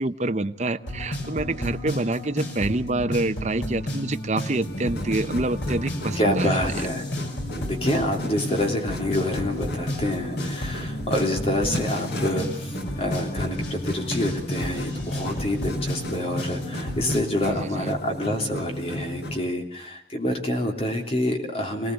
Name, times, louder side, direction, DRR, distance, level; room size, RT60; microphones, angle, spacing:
voice 1, 0.0-6.6 17.4-17.9, right 2 dB, 40° right, 8 dB, 0.8 m, -27 dB
sound 1, 0.8-17.2, left 1 dB, 85° left, 5.2 m, -32 dB
sound 2, 4.5-19.4, left 1 dB, 70° left, 4.6 m, -34 dB
voice 2, 6.1-7.3 7.6-21.9, left 1 dB, 35° left, 2 dB, 3.2 m, -27 dB
23.5 x 18.0 x 8.0 m, 0.73 s
head